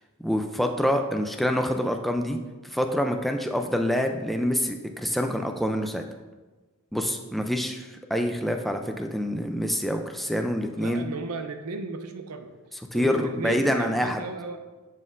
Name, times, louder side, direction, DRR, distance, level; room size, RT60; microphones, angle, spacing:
voice 1, 0.2-2.4 2.6-6.0 6.9-11.0 12.9-14.2, equal, ahead, 4 dB, 0.3 m, -26 dB
voice 2, 10.7-12.5 12.9-14.6, right 3 dB, 80° right, 7 dB, 0.6 m, -35 dB
10.5 x 4.2 x 2.5 m, 1.2 s
head